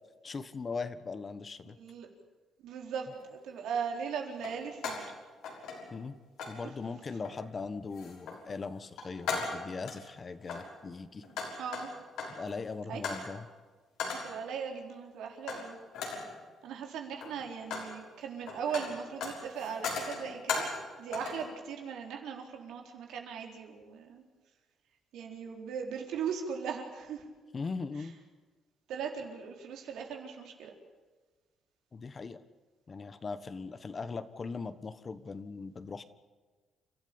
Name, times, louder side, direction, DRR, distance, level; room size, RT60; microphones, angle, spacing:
voice 1, 0.2-1.8 5.9-6.2 6.5-11.2 12.3-13.5 27.5-28.1 31.9-32.4 32.9-36.0, left 4 dB, 35° left, 12 dB, 1.4 m, -39 dB
voice 2, 1.7-2.1 2.6-5.1 6.6-6.7 11.3-11.9 12.9-13.0 14.1-15.8 16.6-20.7 21.0-24.2 25.1-27.2 28.0-28.1 28.9-30.7, right 7 dB, 85° right, 2 dB, 4.0 m, -39 dB
sound 1, 3.1-3.3 4.4-5.1 5.4-6.1 6.4-6.6 7.2-7.5 7.9-8.4 8.8-10.0 10.4-12.5 13.0-13.3 14.0-14.4 15.5-15.7 15.9-16.3 17.0-17.9 18.2-20.9 21.1-21.5, left 4 dB, 85° left, 6.1 m, -38 dB
29.5 x 13.5 x 8.8 m, 1.4 s
cardioid pair, 90°, 0 cm